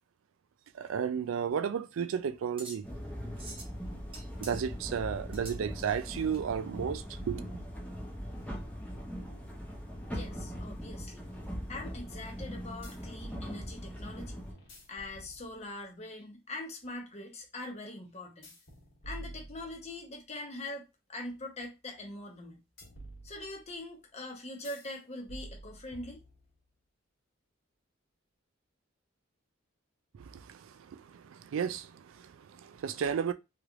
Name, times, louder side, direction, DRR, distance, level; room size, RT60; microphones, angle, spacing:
voice 1, 0.7-2.8 4.4-7.4 30.2-33.3, right 7 dB, 75° right, 0.3 m, -33 dB
sound 1, 1.2-6.4, right 2 dB, 25° right, 0.8 m, -50 dB
sound 2, 2.8-14.5, equal, 5° left, 0.7 m, -41 dB
voice 2, 10.1-11.3 11.7-14.4 14.9-18.5 19.0-22.6 23.2-26.2, left 2 dB, 30° left, 0.9 m, -43 dB
sound 3, 12.8-13.4 14.5-15.8 18.4-20.1 22.8-23.8 24.6-25.0 25.3-26.6, right 1 dB, 60° left, 1.3 m, -49 dB
3.1 x 3.0 x 2.5 m
head